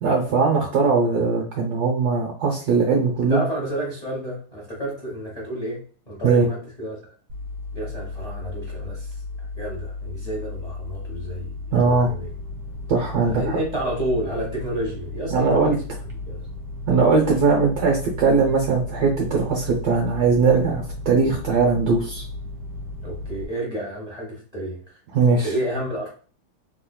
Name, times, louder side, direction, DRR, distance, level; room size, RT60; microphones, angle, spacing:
voice 1, 0.0-3.4 6.2-6.5 11.7-12.1 12.9-13.6 15.3-15.8 16.9-22.2 25.1-25.5, right 4 dB, 70° right, 1 dB, 0.9 m, -20 dB
voice 2, 3.3-7.0 7.7-9.1 9.5-12.3 13.2-15.8 16.3-16.4 23.0-25.0 25.4-26.1, right 1 dB, 45° left, -3 dB, 0.5 m, -30 dB
sound 1, 7.3-23.5, left 2 dB, 50° right, 1.1 m, -35 dB
3.6 x 3.1 x 2.2 m, 0.40 s
omnidirectional pair, 2.4 m